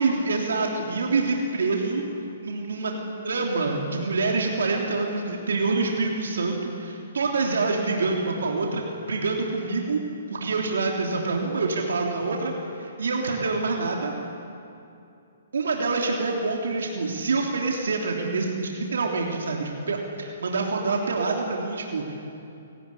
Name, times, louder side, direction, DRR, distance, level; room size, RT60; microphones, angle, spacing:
voice 1, 0.0-2.1 2.4-2.9 3.2-10.0 10.3-12.5 12.8-14.1 15.5-22.3, right 3 dB, 90° right, 0 dB, 3.4 m, -26 dB
29.0 x 18.5 x 8.5 m, 2.7 s
hypercardioid pair, 160°, 0 cm